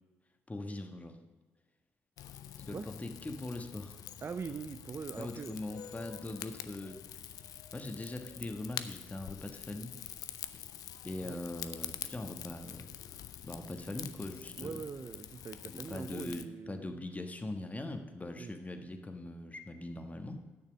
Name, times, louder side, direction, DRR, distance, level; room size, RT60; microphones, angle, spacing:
voice 1, 0.5-1.2 2.6-4.0 5.2-7.0 7.7-9.9 11.0-12.9 13.4-14.7 15.6-20.4, left 2 dB, 20° left, 6 dB, 1.4 m, -41 dB
Rain / Fire, 2.2-16.5, left 10 dB, 65° left, 0.5 m, -46 dB
voice 2, 4.2-5.6 11.2-11.4 14.6-17.1 18.3-18.5, right 5 dB, 40° right, 9 dB, 0.5 m, -42 dB
9.3 x 6.6 x 6.9 m, 1.3 s
hypercardioid pair, 45°, 7 cm